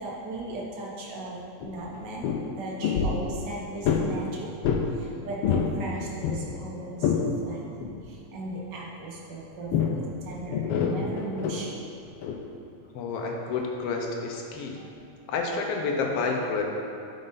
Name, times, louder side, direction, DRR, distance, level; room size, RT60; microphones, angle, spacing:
voice 1, 0.0-4.5 4.9-11.7 14.8-14.9, right 2 dB, 55° right, -3 dB, 1.2 m, -37 dB
sound 1, 1.6-2.4 2.8-3.2 3.8-4.1 4.6-4.9 5.3-5.8 6.0-7.3 7.8-8.0 9.7-10.0 10.5-11.6 12.2-12.4, left 7 dB, 85° left, 1.3 m, -26 dB
voice 2, 12.9-14.8 15.3-16.6, left 4 dB, 70° left, 1 dB, 1.6 m, -29 dB
9.1 x 5.1 x 4.0 m, 2.5 s
omnidirectional pair, 3.3 m